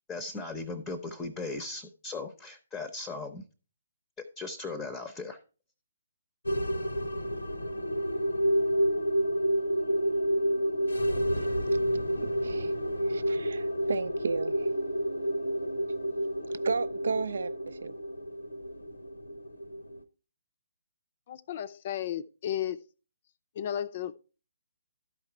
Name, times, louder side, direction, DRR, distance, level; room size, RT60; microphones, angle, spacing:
voice 1, 0.1-3.4 4.2-5.4, left 3 dB, 10° left, 0.8 m, -38 dB
sound 1, 6.4-20.0, equal, 80° left, 0.8 m, -29 dB
voice 2, 12.2-12.7 13.0-14.8 16.6-18.0, right 5 dB, 60° right, 0.5 m, -34 dB
voice 3, 21.3-22.8 23.5-24.2, left 10 dB, 40° left, 0.5 m, -34 dB
12.0 x 4.8 x 4.5 m
figure-of-eight pair, 135°, 0 cm